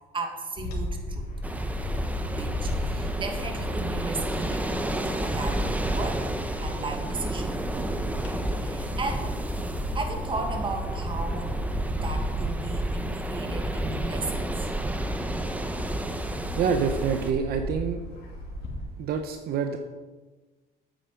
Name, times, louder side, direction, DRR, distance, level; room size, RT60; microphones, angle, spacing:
voice 1, 0.1-1.3 2.3-6.3 6.6-7.6 8.6-9.4 9.9-11.6 11.9-14.7, right 3 dB, 30° right, 4 dB, 1.8 m, -35 dB
Bird / Wind, 0.6-18.8, left 1 dB, 70° left, 2.8 m, -35 dB
sound 1, 1.4-17.3, right 1 dB, 10° right, 0.9 m, -31 dB
voice 2, 16.6-18.0 19.0-19.8, right 6 dB, 65° right, 6 dB, 0.8 m, -27 dB
8.9 x 8.8 x 5.1 m, 1.3 s
cardioid pair, 110°, 17 cm